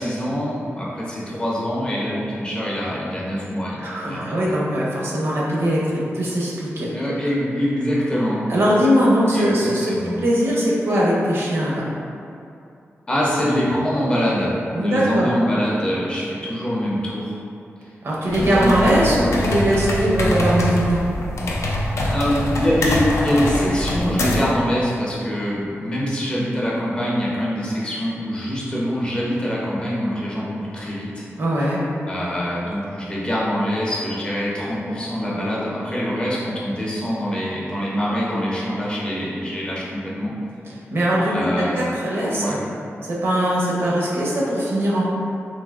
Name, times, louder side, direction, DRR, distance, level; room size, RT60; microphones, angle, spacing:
voice 1, 0.0-4.6 6.9-8.4 9.3-10.2 13.1-17.4 18.4-19.5 22.1-31.2 32.1-40.3 41.3-41.9 42.3-42.6, equal, 20° left, -6 dB, 0.5 m, -24 dB
voice 2, 3.8-5.8 6.1-6.9 8.5-11.9 14.7-15.3 18.0-21.0 31.4-31.8 40.9-42.6 43.0-45.0, equal, 60° right, -5 dB, 0.6 m, -20 dB
sound 1, 18.3-24.6, left 1 dB, 90° left, 0.3 m, -24 dB
3.2 x 2.5 x 2.3 m, 2.6 s
wide cardioid pair, 165°, 5 cm